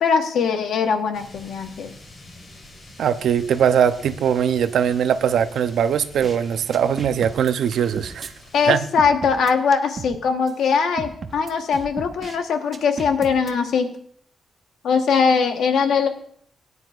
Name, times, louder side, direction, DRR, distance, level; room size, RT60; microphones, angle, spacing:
voice 1, 0.0-1.9 8.5-13.9 14.8-16.1, left 5 dB, 85° left, 6 dB, 1.2 m, -21 dB
sound 1, 1.1-8.8, left 2 dB, 45° left, 3.4 m, -45 dB
voice 2, 3.0-8.3 8.7-8.8, right 8 dB, 85° right, 12 dB, 0.6 m, -20 dB
sound 2, 6.1-6.4 6.7-8.3 9.0-10.2 10.5-10.6 11.0-12.4 12.7-13.5, right 4 dB, 35° right, 0.8 m, -35 dB
18.0 x 9.7 x 2.4 m, 0.62 s
wide cardioid pair, 145°, 0 cm